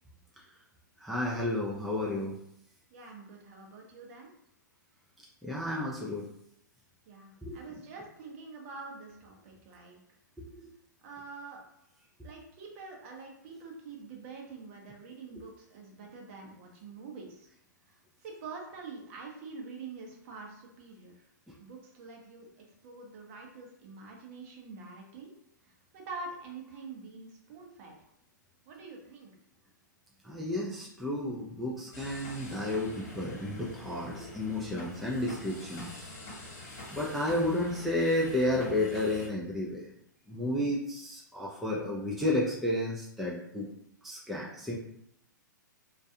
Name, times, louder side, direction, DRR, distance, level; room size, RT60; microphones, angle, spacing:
voice 1, 1.0-2.4 5.4-6.3 7.4-7.6 10.4-10.7 15.4-15.5 21.5-21.6 30.2-36.0 36.9-39.9 40.3-43.7 44.0-44.8, left 1 dB, ahead, -6 dB, 0.4 m, -32 dB
voice 2, 2.9-4.3 7.0-10.0 11.0-11.6 12.2-17.5 17.9-21.3 21.6-25.3 25.6-28.1 28.7-29.3, right 4 dB, 45° right, 0 dB, 0.7 m, -46 dB
sound 1, 31.9-39.3, left 2 dB, 40° left, 1.2 m, -45 dB
2.3 x 2.3 x 2.7 m, 0.76 s
hypercardioid pair, 120°, 10 cm